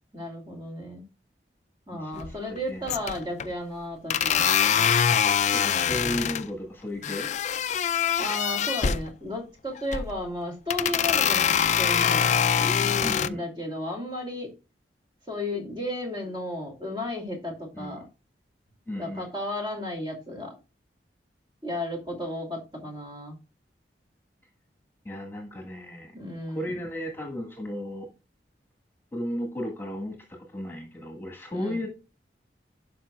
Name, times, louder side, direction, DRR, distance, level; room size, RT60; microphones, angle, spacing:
voice 1, 0.1-1.0 1.9-4.6 8.2-14.5 15.3-18.0 18.9-20.6 21.6-23.4 26.1-26.8 31.5-31.8, left 1 dB, 25° right, 1 dB, 2.7 m, -34 dB
voice 2, 1.9-2.9 5.5-7.3 13.0-13.4 17.7-18.0 18.9-19.3 25.0-26.1 26.5-28.1 29.1-31.9, left 1 dB, 10° left, 1 dB, 1.7 m, -34 dB
sound 1, 2.2-2.6 2.9-3.5 4.1-6.4 7.0-9.1 9.8-10.2 10.7-13.3, left 8 dB, 40° left, 0.4 m, -24 dB
11.5 x 5.4 x 2.4 m, 0.29 s
head